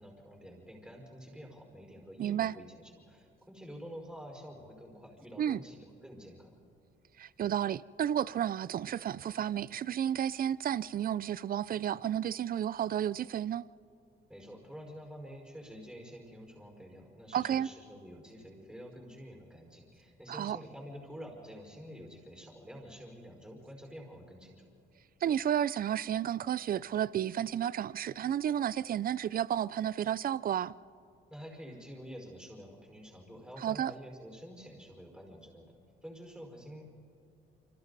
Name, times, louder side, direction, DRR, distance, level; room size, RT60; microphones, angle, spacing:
voice 1, 0.0-6.5 14.3-24.7 31.3-36.8, equal, 5° right, 5.2 m, -48 dB
voice 2, 2.2-2.5 5.4-5.6 7.2-13.7 17.3-17.7 20.3-20.6 25.2-30.7 33.6-33.9, right 10 dB, 45° right, 0.5 m, -32 dB
27.5 x 26.0 x 4.1 m
cardioid pair, 90°, 20 cm